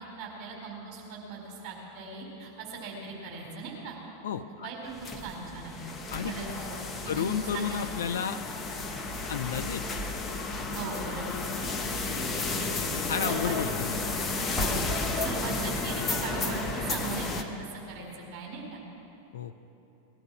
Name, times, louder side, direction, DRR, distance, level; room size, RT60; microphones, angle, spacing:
voice 1, 0.2-4.0 4.6-5.8 6.2-7.9 10.7-11.4 13.3-13.5 14.5-14.8 15.1-18.8, right 4 dB, 30° right, -2 dB, 4.6 m, -39 dB
voice 2, 4.2-4.7 6.1-6.3 7.1-8.4 9.3-9.8 12.9-14.0 19.3-19.5, left 8 dB, 60° left, 9 dB, 0.5 m, -32 dB
sound 1, 4.9-17.4, left 3 dB, 20° left, 1.2 m, -32 dB
19.0 x 12.0 x 6.2 m, 3.0 s
figure-of-eight pair, 90°, 0 cm